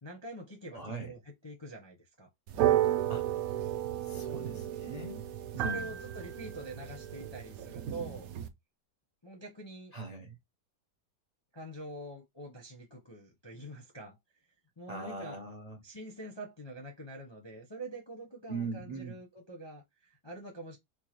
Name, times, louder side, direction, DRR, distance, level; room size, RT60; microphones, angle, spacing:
voice 1, 0.0-1.2 1.4-2.3 5.6-8.3 9.2-9.9 11.5-14.2 14.8-15.4 15.8-20.8, right 1 dB, 30° left, 0.5 m, -45 dB
voice 2, 0.7-1.1 3.1-3.3 4.0-5.3 5.5-5.9 9.9-10.4 14.9-15.8 18.5-19.2, right 3 dB, 45° right, 0.5 m, -40 dB
sound 1, 2.5-8.5, right 12 dB, 70° right, 0.9 m, -33 dB
4.5 x 2.2 x 3.0 m
omnidirectional pair, 1.8 m